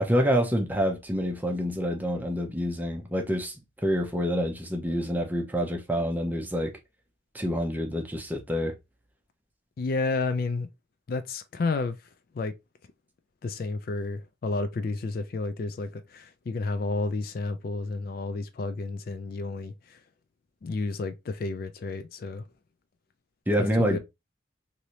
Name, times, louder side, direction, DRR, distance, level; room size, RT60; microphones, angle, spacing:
voice 1, 0.0-3.6 3.8-6.7 7.3-8.7 23.5-24.0, equal, 10° right, 0.6 m, -27 dB
voice 2, 9.8-10.7 11.1-12.0 12.3-12.5 13.4-20.0 20.6-22.4 23.6-24.0, left 3 dB, 45° left, 0.3 m, -31 dB
3.2 x 2.6 x 2.8 m
head